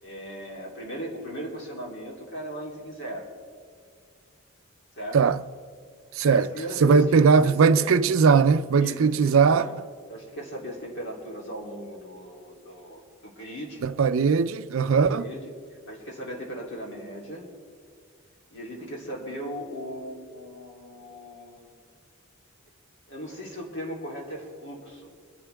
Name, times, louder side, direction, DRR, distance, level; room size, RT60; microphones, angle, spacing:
voice 1, 0.0-3.3 4.9-5.2 6.2-7.9 8.8-9.7 10.1-13.8 14.7-15.5 15.9-17.5 18.5-21.7 23.1-25.1, equal, 55° left, 3.1 m, -37 dB
voice 2, 6.2-6.5 6.8-9.6 13.8-15.2, right 5 dB, 65° right, 0.4 m, -19 dB
25.0 x 11.5 x 3.4 m
head